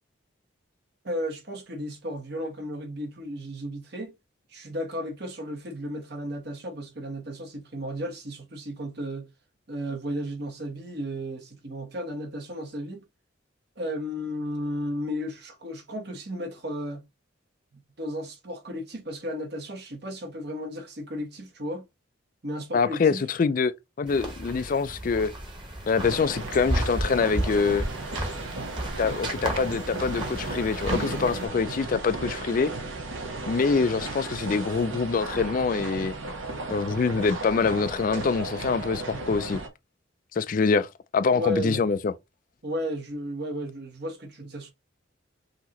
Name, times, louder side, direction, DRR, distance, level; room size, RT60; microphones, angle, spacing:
voice 1, 1.0-4.1 4.5-9.3 9.7-13.0 13.8-17.0 17.7-21.8 22.4-23.2 41.3-41.8 42.6-44.7, equal, 55° right, 1.1 m, -34 dB
voice 2, 22.7-23.7 24.0-25.3 25.9-27.8 29.0-32.7 33.5-36.1 36.7-39.6 40.3-42.1, left 5 dB, 45° left, 0.3 m, -25 dB
sound 1, 24.1-31.5, right 1 dB, 25° right, 1.3 m, -33 dB
sound 2, 26.0-39.7, right 2 dB, 85° right, 1.2 m, -35 dB
5.6 x 2.9 x 2.9 m
head